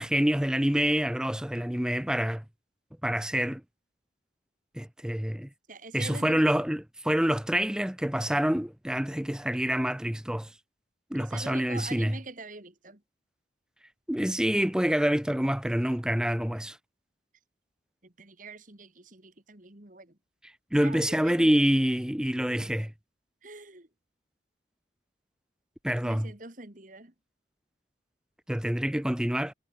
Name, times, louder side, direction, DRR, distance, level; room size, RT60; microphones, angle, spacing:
voice 1, 0.0-2.4 3.0-3.6 4.7-5.5 5.9-10.5 11.1-12.2 14.1-16.8 20.7-22.9 25.8-26.3 28.5-29.5, equal, 5° right, 0.6 m, -27 dB
voice 2, 5.7-6.4 11.2-13.0 18.0-20.2 20.8-21.6 23.4-23.9 26.0-27.1, right 3 dB, 45° right, 2.3 m, -44 dB
head